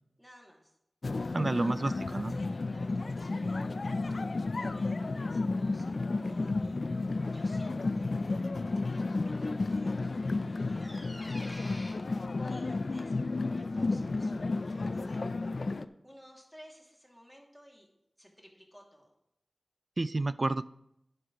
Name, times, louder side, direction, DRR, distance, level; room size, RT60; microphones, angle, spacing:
voice 1, 0.2-0.8 1.1-1.9 2.4-8.3 8.8-11.8 12.4-15.2 16.0-17.9 18.2-19.1, equal, ahead, -1 dB, 2.4 m, -57 dB
sound 1, 1.0-15.9, left 3 dB, 65° left, 0.4 m, -32 dB
voice 2, 1.3-2.4 20.0-20.7, right 2 dB, 50° right, 16 dB, 0.4 m, -30 dB
sound 2, 3.2-8.3, equal, 90° right, 2.7 m, -57 dB
sound 3, 7.1-11.9, left 1 dB, 30° left, 3.5 m, -53 dB
11.0 x 10.5 x 3.0 m, 0.82 s
wide cardioid pair, 65°, 0 cm